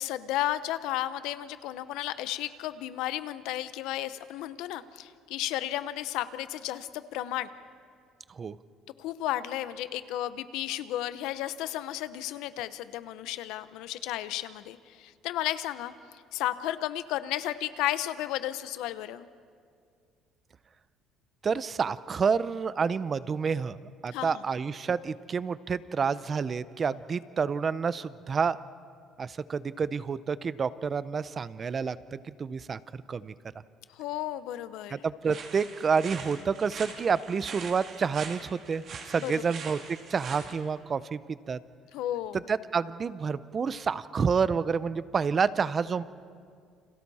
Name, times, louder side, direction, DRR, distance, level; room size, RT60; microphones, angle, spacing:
voice 1, 0.0-7.5 9.0-15.9 16.3-19.3 24.1-24.4 33.9-35.0 39.2-39.4 41.9-42.4, left 13 dB, 80° left, 13 dB, 0.8 m, -33 dB
voice 2, 21.4-28.6 29.2-32.8 33.1-33.3 34.9-41.6 42.5-46.0, right 5 dB, 25° right, 16 dB, 0.5 m, -29 dB
sound 1, 35.3-40.5, right 5 dB, 45° right, 2.6 m, -43 dB
29.5 x 27.0 x 4.2 m, 2.2 s
cardioid pair, 155°, 0 cm